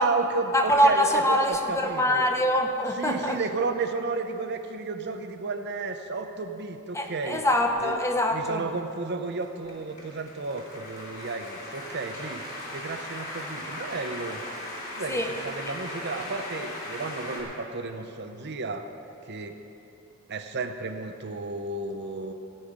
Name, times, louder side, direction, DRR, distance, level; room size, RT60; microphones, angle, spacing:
voice 1, 0.0-2.3 3.0-7.4 7.8-7.9 8.3-12.4 12.7-14.4 14.9-18.9 19.3-19.6 20.3-22.3, right 3 dB, 50° right, 7 dB, 0.7 m, -32 dB
voice 2, 0.5-3.4 6.9-8.7 15.1-15.3, equal, 15° left, 4 dB, 0.8 m, -24 dB
sound 1, 8.2-17.4, left 1 dB, 35° left, 3.0 m, -39 dB
16.5 x 5.6 x 8.6 m, 2.8 s
head